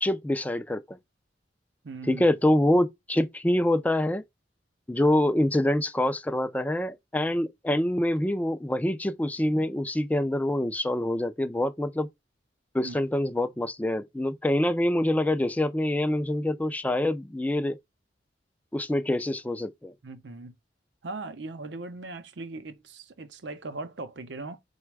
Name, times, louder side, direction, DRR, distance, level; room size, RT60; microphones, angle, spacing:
voice 1, 0.0-1.0 2.1-4.2 4.9-12.1 12.7-17.8 18.7-19.9, left 1 dB, 10° left, 0.3 m, -25 dB
voice 2, 1.8-2.3 12.8-13.0 20.0-20.5 21.0-24.6, right 3 dB, 70° right, 0.7 m, -39 dB
4.1 x 2.2 x 4.6 m
head